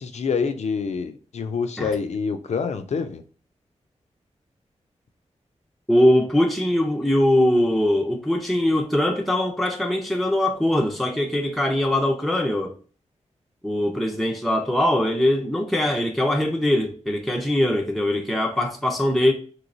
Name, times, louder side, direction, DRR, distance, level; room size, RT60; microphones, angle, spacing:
voice 1, 0.0-3.2, left 5 dB, 65° left, 0.4 m, -26 dB
voice 2, 5.9-12.7 13.6-19.3, left 1 dB, ahead, 0.4 m, -21 dB
3.0 x 3.0 x 2.6 m
wide cardioid pair, 85°, 12 cm